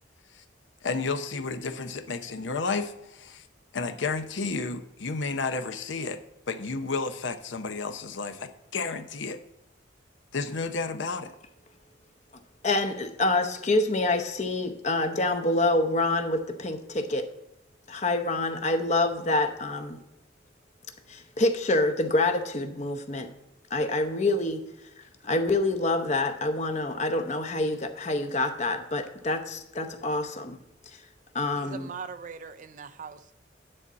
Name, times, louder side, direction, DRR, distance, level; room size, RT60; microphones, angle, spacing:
voice 1, 0.8-3.4 3.7-6.2 6.5-9.4 10.3-11.3, left 4 dB, 70° left, 9 dB, 0.7 m, -31 dB
voice 2, 12.6-17.3 17.9-20.0 21.1-23.3 23.7-24.6 25.0-30.6 30.9-31.0 31.3-31.9, left 2 dB, 35° left, 7 dB, 0.8 m, -27 dB
voice 3, 31.5-33.4, right 5 dB, 40° right, 11 dB, 0.4 m, -41 dB
9.9 x 4.1 x 7.3 m, 0.87 s
head